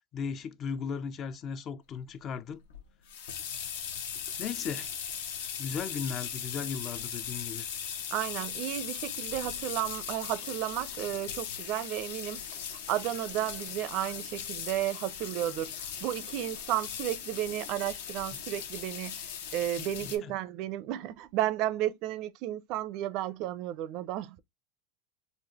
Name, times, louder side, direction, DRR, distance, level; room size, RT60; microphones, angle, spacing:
voice 1, 0.1-2.6 4.4-4.9 5.6-7.7 19.8-20.3, left 6 dB, 30° left, 0.3 m, -36 dB
sound 1, 2.7-20.2, left 8 dB, 80° left, 0.8 m, -39 dB
voice 2, 8.1-24.4, right 13 dB, 45° right, 0.4 m, -33 dB
4.0 x 2.4 x 2.7 m
supercardioid pair, 155°, 0 cm